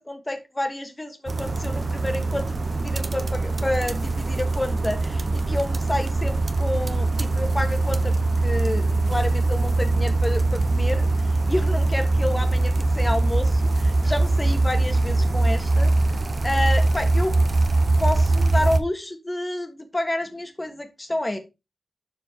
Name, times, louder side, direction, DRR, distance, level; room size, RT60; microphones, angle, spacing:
voice 1, 0.0-8.2 8.4-15.9 16.4-17.3 18.0-21.4, left 1 dB, 15° left, 7 dB, 1.6 m, -29 dB
sound 1, 1.3-18.8, right 2 dB, 40° right, 1.0 m, -22 dB
12.0 x 4.2 x 4.7 m, 0.25 s
wide cardioid pair, 135°, 0 cm